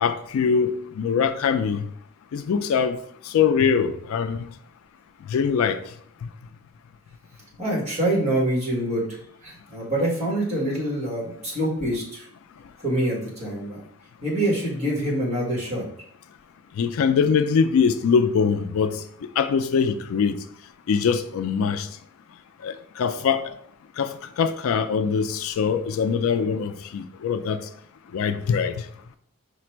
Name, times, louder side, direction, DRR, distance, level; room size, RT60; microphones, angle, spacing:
voice 1, 0.0-0.7 1.0-1.8 2.3-3.0 3.3-4.5 5.3-5.8 16.8-19.0 19.4-20.4 20.9-21.9 22.6-23.5 24.0-27.6 28.1-28.7, left 6 dB, 70° left, 0.3 m, -22 dB
voice 2, 7.6-9.1 9.4-12.2 12.8-13.8 14.2-15.8, right 1 dB, 30° right, 1.3 m, -25 dB
5.0 x 2.1 x 4.4 m
head